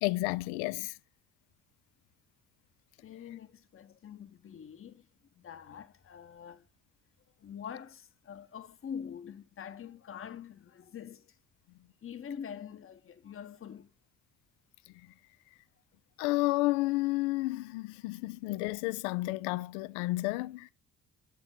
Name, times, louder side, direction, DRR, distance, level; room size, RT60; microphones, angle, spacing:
voice 1, 0.0-0.9 16.2-20.7, left 20 dB, 60° left, 0.5 m, -31 dB
voice 2, 3.0-5.1 5.3-6.7 7.4-11.4 12.0-13.9 17.6-17.7, left 8 dB, 30° left, 0.9 m, -45 dB
7.7 x 4.7 x 3.6 m
figure-of-eight pair, 45°, 43 cm